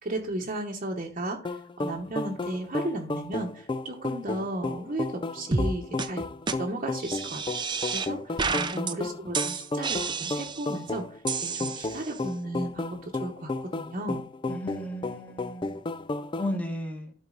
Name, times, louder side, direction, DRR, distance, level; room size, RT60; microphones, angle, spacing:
voice 1, 0.0-6.3 6.6-14.2, right 1 dB, 40° right, -1 dB, 1.1 m, -35 dB
sound 1, 1.4-16.5, left 2 dB, 25° left, 0.4 m, -33 dB
sound 2, 5.5-5.7 6.0-6.1 6.5-6.6 7.0-8.1 8.4-8.9 9.3-10.7 11.3-12.2, right 4 dB, 25° right, 0.6 m, -30 dB
voice 2, 8.5-9.0 14.5-15.8 16.4-17.1, left 1 dB, 10° left, 2 dB, 1.6 m, -35 dB
12.0 x 4.5 x 3.9 m, 0.41 s
head